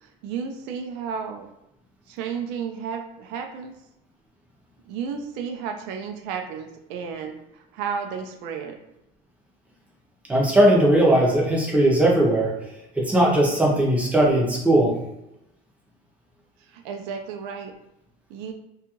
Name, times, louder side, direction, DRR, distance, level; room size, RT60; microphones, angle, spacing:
voice 1, 0.0-1.5 2.1-3.7 4.9-8.8 16.7-17.7 18.3-18.5, right 6 dB, 80° right, 5 dB, 0.4 m, -33 dB
voice 2, 10.3-12.5 12.9-14.9, right 1 dB, 5° right, -3 dB, 0.5 m, -18 dB
2.7 x 2.3 x 2.8 m, 0.87 s
cardioid pair, 170°, 19 cm